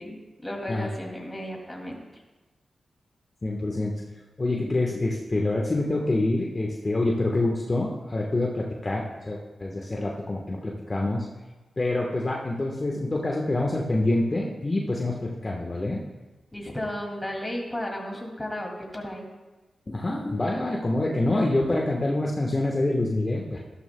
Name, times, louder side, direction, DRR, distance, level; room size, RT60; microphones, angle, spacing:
voice 1, 0.0-2.2 16.5-19.3, left 1 dB, 15° left, -1 dB, 2.4 m, -34 dB
voice 2, 3.4-3.9 4.4-11.2 11.8-16.0 19.9-23.6, left 2 dB, 35° left, -1 dB, 1.2 m, -26 dB
13.0 x 12.0 x 2.2 m, 1.2 s
cardioid pair, 45°, 0 cm